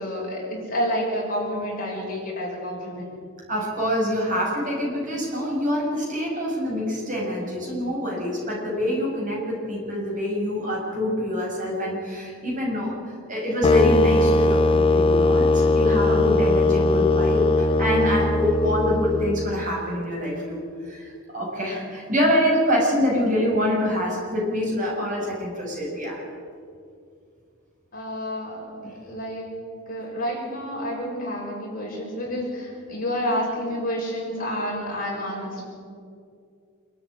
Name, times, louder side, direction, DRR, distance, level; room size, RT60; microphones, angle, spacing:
voice 1, 0.0-3.0 27.9-35.6, equal, 40° left, -3 dB, 6.3 m, -29 dB
voice 2, 3.5-13.0 13.3-26.2 28.8-28.9, left 1 dB, 35° right, -2 dB, 6.7 m, -25 dB
sound 1, 13.6-19.7, left 2 dB, 25° left, 0.5 m, -20 dB
26.5 x 12.5 x 9.9 m, 2.3 s
head